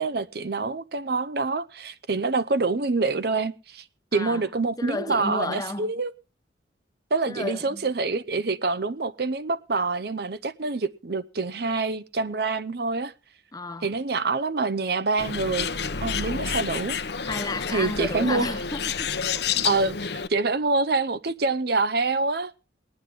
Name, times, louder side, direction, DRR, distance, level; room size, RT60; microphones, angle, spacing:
voice 1, 0.0-3.8 4.1-6.1 7.1-13.1 13.8-15.7 16.0-17.0 17.7-18.6 19.6-20.0 20.3-22.5, right 3 dB, 55° right, 0.7 m, -26 dB
voice 2, 4.1-4.4 4.8-5.9 7.3-7.8 13.5-13.9 17.2-19.7, left 2 dB, 20° left, 0.9 m, -33 dB
Bird, 15.2-20.3, left 6 dB, 60° left, 0.8 m, -29 dB
19.5 x 9.8 x 3.6 m
head